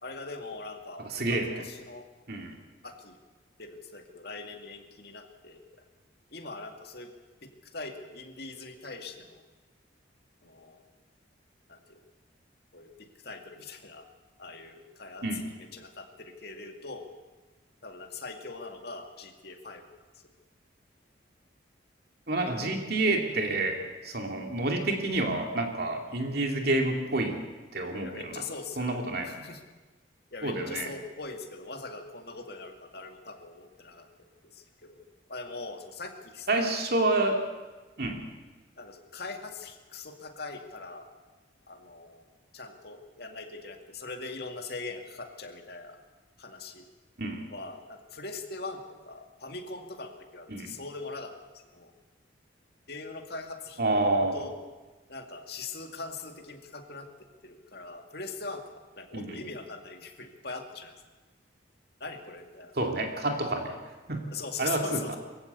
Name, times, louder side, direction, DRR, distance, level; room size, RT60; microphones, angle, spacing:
voice 1, 0.0-2.0 2.8-3.2 3.6-5.6 6.3-7.1 7.4-9.4 10.4-10.8 11.7-12.0 12.7-14.1 14.4-17.1 17.8-19.8 26.1-26.2 28.0-29.0 29.3-29.6 30.3-34.1 34.5-35.0 35.3-36.8 38.8-41.1 41.7-42.3 42.5-46.0 46.4-46.9 47.5-51.3 51.7-51.9 52.9-54.5 55.1-57.1 57.4-58.6 58.9-60.9 62.0-62.7 64.3-65.2, left 3 dB, 55° left, 4 dB, 2.3 m, -41 dB
voice 2, 1.0-1.6 2.3-2.6 15.2-15.4 22.3-23.8 24.0-27.4 27.7-28.4 28.8-29.3 30.4-30.8 36.5-37.4 38.0-38.2 47.2-47.4 50.5-50.7 53.8-54.4 59.1-59.4 62.8-63.7 64.1-64.2 64.6-65.0, right 2 dB, 55° right, 3 dB, 2.6 m, -28 dB
23.0 x 15.0 x 8.3 m, 1.3 s
head